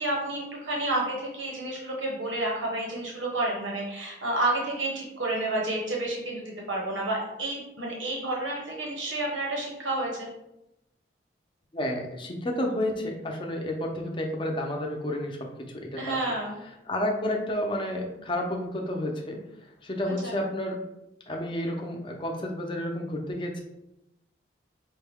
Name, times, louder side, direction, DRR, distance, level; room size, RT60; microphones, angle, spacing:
voice 1, 0.0-10.3 16.0-16.6 20.2-20.3, right 2 dB, 85° right, -2 dB, 1.0 m, -30 dB
voice 2, 11.7-15.4 15.7-16.2 16.9-19.4 19.8-20.8 21.3-23.6, left 1 dB, 25° left, 1 dB, 0.6 m, -30 dB
5.4 x 2.2 x 3.5 m, 0.87 s
head